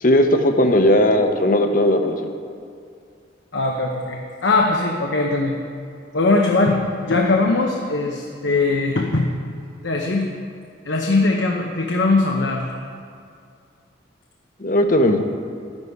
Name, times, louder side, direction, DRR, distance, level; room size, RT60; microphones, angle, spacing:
voice 1, 0.0-2.2 14.6-15.2, left 1 dB, 45° left, 5 dB, 0.9 m, -17 dB
voice 2, 3.5-5.6 6.1-9.3 9.8-10.3 10.8-12.8, left 3 dB, 75° left, 1 dB, 0.9 m, -20 dB
11.5 x 10.5 x 4.7 m, 2.3 s
head